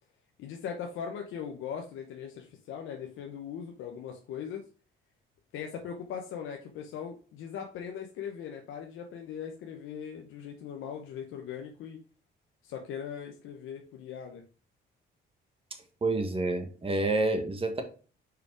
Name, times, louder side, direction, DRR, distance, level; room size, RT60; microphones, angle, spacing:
voice 1, 0.4-4.6 5.5-12.0 12.6-14.4, left 7 dB, 90° left, 3 dB, 0.9 m, -40 dB
voice 2, 16.0-17.8, right 2 dB, 30° right, 5 dB, 1.6 m, -28 dB
5.2 x 4.9 x 4.7 m, 0.37 s
cardioid pair, 90°, 20 cm